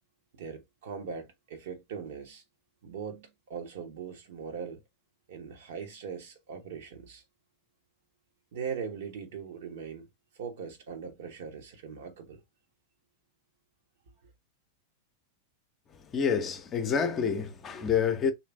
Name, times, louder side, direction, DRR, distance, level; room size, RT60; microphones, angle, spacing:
voice 1, 0.3-2.4 2.8-4.8 5.3-7.2 8.5-10.1 10.3-12.4, right 6 dB, 55° right, 1.1 m, -40 dB
voice 2, 15.9-18.3, left 6 dB, 25° left, 0.7 m, -28 dB
3.3 x 2.8 x 3.3 m
figure-of-eight pair, 90°, 0 cm